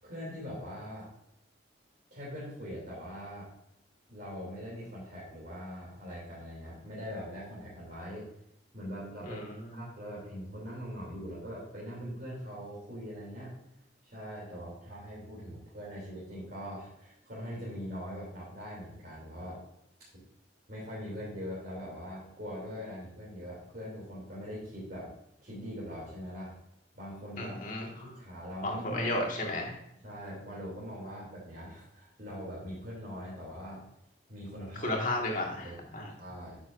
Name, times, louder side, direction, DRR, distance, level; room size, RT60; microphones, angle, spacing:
voice 1, 0.0-1.1 2.1-3.5 4.1-8.3 8.7-13.5 14.0-19.6 20.7-25.1 25.4-26.5 26.9-27.6 28.0-29.2 30.0-33.8 34.3-35.0 35.6-35.8 36.2-36.6, equal, 50° right, -7 dB, 3.1 m, -42 dB
voice 2, 9.2-9.8 27.4-28.1 28.6-29.8 34.8-36.1, left 1 dB, 45° left, -1 dB, 2.0 m, -33 dB
9.7 x 7.1 x 2.7 m, 0.78 s
head